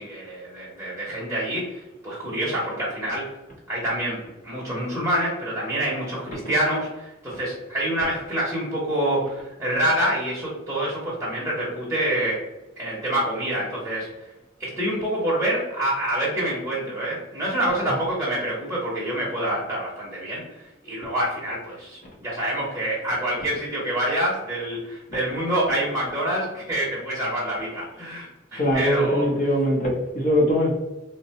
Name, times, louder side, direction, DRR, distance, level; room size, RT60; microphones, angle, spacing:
voice 1, 0.0-3.3 3.7-12.4 12.8-14.1 14.6-29.3, right 1 dB, 10° right, -6 dB, 0.8 m, -27 dB
voice 2, 28.6-30.8, equal, 40° left, -1 dB, 0.8 m, -22 dB
3.8 x 2.2 x 2.8 m, 1.0 s
head